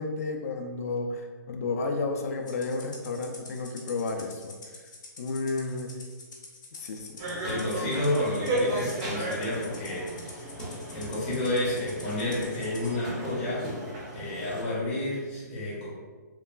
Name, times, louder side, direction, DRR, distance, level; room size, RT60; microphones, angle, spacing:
voice 1, 0.0-4.6 5.2-5.9 6.7-7.2 7.5-8.2, left 3 dB, 55° left, 4 dB, 0.4 m, -32 dB
Rattle (instrument), 2.5-12.9, left 3 dB, 85° left, 0.7 m, -47 dB
sound 1, 7.2-14.6, right 1 dB, 20° right, 0.4 m, -35 dB
voice 2, 7.4-10.5 10.9-13.7 14.1-15.9, left 1 dB, 25° left, -7 dB, 0.8 m, -30 dB
2.9 x 2.2 x 2.3 m, 1.4 s
hypercardioid pair, 170°, 10 cm